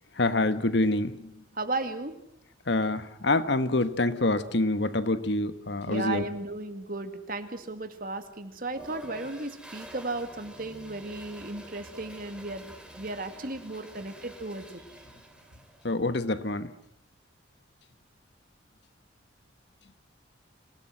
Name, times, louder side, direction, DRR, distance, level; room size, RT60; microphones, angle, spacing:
voice 1, 0.2-1.3 2.7-6.2 15.8-16.7, left 2 dB, 60° left, 12 dB, 1.2 m, -26 dB
voice 2, 1.5-2.1 5.9-14.8, right 2 dB, 45° right, 9 dB, 2.1 m, -35 dB
Toilet flush, 8.7-16.0, equal, 5° right, 2.8 m, -48 dB
26.5 x 18.5 x 7.7 m, 0.74 s
head